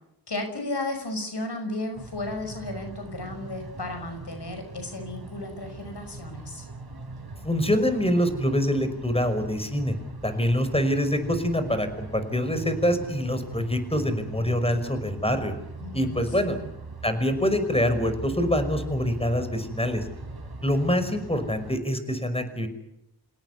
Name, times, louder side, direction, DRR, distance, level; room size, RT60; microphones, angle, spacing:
voice 1, 0.3-6.7 15.8-16.6, left 2 dB, 85° left, 6 dB, 5.9 m, -34 dB
sound 1, 1.9-21.8, right 2 dB, 65° right, 5.2 m, -40 dB
voice 2, 7.4-9.9 10.2-15.5 15.9-16.6 17.0-20.1 20.6-22.7, equal, 15° left, 9 dB, 5.5 m, -25 dB
28.0 x 17.5 x 8.3 m, 0.83 s
wide cardioid pair, 45°, 39 cm